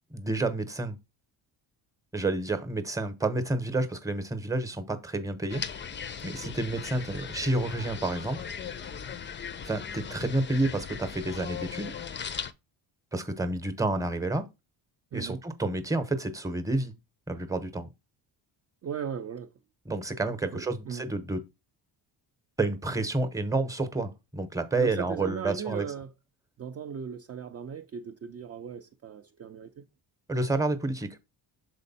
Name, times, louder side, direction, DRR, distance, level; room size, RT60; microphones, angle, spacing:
voice 1, 0.1-1.0 2.1-5.6 6.2-8.4 9.6-11.9 13.1-14.4 15.1-16.9 17.3-17.9 19.9-21.4 22.6-25.8 30.3-31.1, right 2 dB, 5° right, 0.8 m, -29 dB
sound 1, 5.5-12.5, left 7 dB, 25° left, 0.4 m, -38 dB
voice 2, 6.2-6.6 15.1-15.4 18.8-19.5 20.5-21.0 24.8-26.1 26.6-29.9, right 7 dB, 35° right, 0.5 m, -38 dB
6.4 x 4.3 x 4.1 m
cardioid pair, 125°, 44 cm